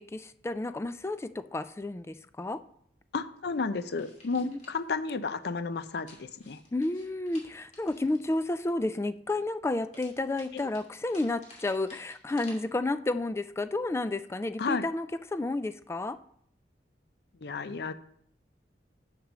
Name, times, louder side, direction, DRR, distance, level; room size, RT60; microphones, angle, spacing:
voice 1, 0.0-2.6 4.4-4.6 6.7-16.2, left 2 dB, 15° left, 12 dB, 0.3 m, -31 dB
voice 2, 3.1-6.6 10.5-10.7 14.6-14.9 17.4-17.9, left 4 dB, 65° left, 12 dB, 0.5 m, -32 dB
sound 1, 4.0-4.8 6.1-8.7 9.9-12.5, left 2 dB, 40° left, 2.5 m, -54 dB
6.8 x 6.1 x 6.1 m, 0.66 s
head